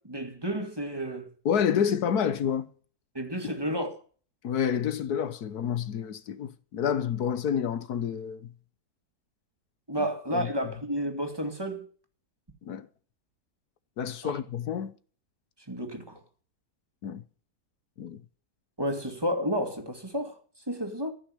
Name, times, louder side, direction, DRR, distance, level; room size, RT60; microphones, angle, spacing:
voice 1, 0.0-1.3 3.1-4.0 9.9-11.9 14.2-14.4 15.7-16.2 18.8-20.4 20.7-21.1, equal, 15° right, 2.4 m, -31 dB
voice 2, 1.4-2.7 3.4-3.5 4.4-8.5 10.0-10.1 10.3-10.5 12.6-12.9 14.0-14.9 17.0-17.2 18.0-18.2, left 8 dB, 80° left, 1.5 m, -29 dB
15.0 x 6.4 x 9.8 m
omnidirectional pair, 1.6 m